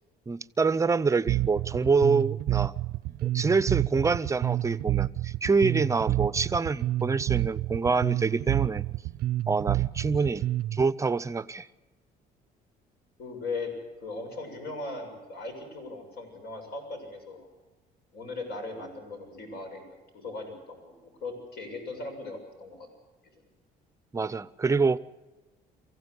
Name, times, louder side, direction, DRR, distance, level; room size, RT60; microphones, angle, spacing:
voice 1, 0.3-2.8 3.2-8.9 9.5-11.7 24.1-25.0, right 4 dB, 20° right, 0.6 m, -26 dB
Bass guitar, 1.3-10.8, right 15 dB, 70° right, 0.6 m, -28 dB
voice 2, 13.2-13.7 14.0-17.5 18.1-19.8 20.1-20.9 21.2-22.9, left 3 dB, 70° left, 7.0 m, -38 dB
23.5 x 15.5 x 8.1 m
cardioid pair, 110°, 17 cm